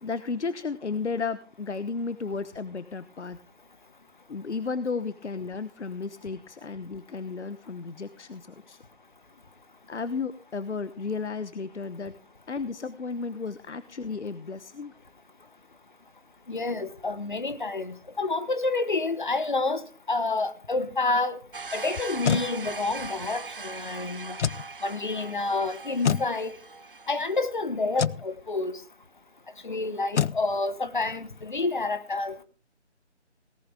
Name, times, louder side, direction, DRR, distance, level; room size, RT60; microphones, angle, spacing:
voice 1, 0.0-3.4 4.3-8.8 9.9-12.1 12.5-14.9, left 4 dB, 75° left, 13 dB, 1.0 m, -33 dB
voice 2, 16.5-21.4 21.7-24.4 24.8-26.6 27.1-28.8 29.6-32.4, left 3 dB, 45° left, 13 dB, 1.2 m, -29 dB
sound 1, 21.5-27.4, right 4 dB, 50° right, 0.8 m, -40 dB
sound 2, 22.0-22.5 24.3-24.7 26.0-26.3 27.9-28.2 30.1-30.4, left 8 dB, 90° left, 0.5 m, -25 dB
18.0 x 11.0 x 3.4 m, 0.37 s
figure-of-eight pair, 170°, 35 cm